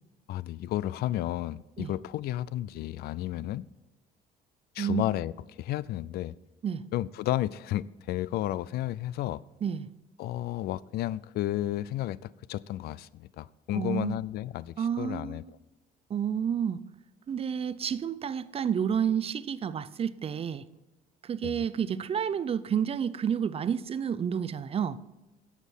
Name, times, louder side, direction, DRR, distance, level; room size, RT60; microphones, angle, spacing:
voice 1, 0.3-3.6 4.7-6.3 6.9-9.4 10.2-15.4 21.4-21.6, left 14 dB, 70° left, 21 dB, 0.4 m, -32 dB
voice 2, 13.7-14.2 14.8-15.4 16.1-16.8 17.3-20.7 21.2-25.0, right 8 dB, 35° right, 17 dB, 0.5 m, -30 dB
10.5 x 7.3 x 5.4 m, 1.1 s
cardioid pair, 110°, 17 cm